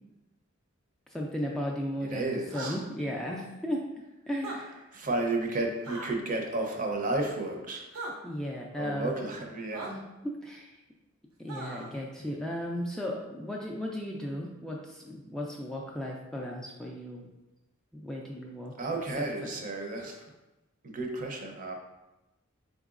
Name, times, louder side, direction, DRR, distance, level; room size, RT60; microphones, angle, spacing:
voice 1, 1.1-3.8 4.3-4.8 8.2-9.1 9.9-10.8 11.4-17.3 17.9-19.0, equal, 5° left, -2 dB, 0.3 m, -35 dB
voice 2, 2.0-2.8 4.9-7.9 8.7-9.9 18.8-20.3 20.8-21.7, right 2 dB, 40° right, 2 dB, 0.6 m, -32 dB
sound 1, 2.5-2.8 4.3-4.6 5.8-6.1 7.9-8.1 9.7-9.9 11.5-11.9, right 2 dB, 85° right, 0.8 m, -39 dB
4.2 x 3.8 x 2.4 m, 1.0 s
head